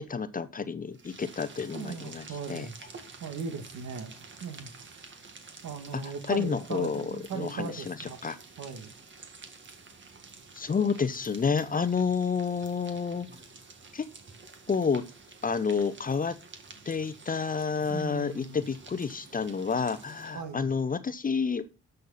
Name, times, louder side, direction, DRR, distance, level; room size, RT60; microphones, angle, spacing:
voice 1, 0.0-2.7 5.9-6.0 6.3-8.0 8.2-8.4 10.6-13.3 13.9-14.1 14.7-15.0 15.4-16.4 16.9-21.7, left 5 dB, 30° left, 13 dB, 0.8 m, -29 dB
sound 1, 0.9-20.5, right 4 dB, 40° right, 1.9 m, -50 dB
voice 2, 1.7-2.8 3.2-5.1 5.6-8.2 8.6-8.9 17.9-18.6 20.3-20.8, right 6 dB, 75° right, 7 dB, 2.1 m, -38 dB
11.0 x 6.6 x 4.1 m, 0.33 s
cardioid pair, 90°, 30 cm